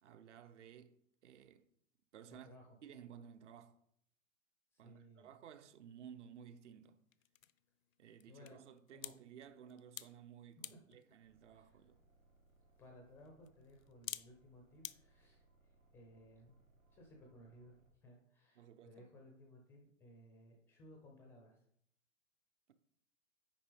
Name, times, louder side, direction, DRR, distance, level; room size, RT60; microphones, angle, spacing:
voice 1, 0.0-1.7 2.1-2.5 2.8-3.8 4.8-7.0 8.0-12.0 18.6-19.1, right 8 dB, 60° right, 0.9 m, -56 dB
voice 2, 2.3-2.8 4.7-5.3 8.3-8.6 8.9-9.2 10.7-10.8 11.5-11.8 12.8-16.6 16.9-21.6, left 1 dB, 5° left, 0.4 m, -60 dB
sound 1, 5.6-15.0, left 11 dB, 75° left, 0.6 m, -55 dB
sound 2, 11.2-17.9, right 2 dB, 90° right, 2.6 m, -71 dB
8.8 x 5.3 x 3.4 m
hypercardioid pair, 125°, 41 cm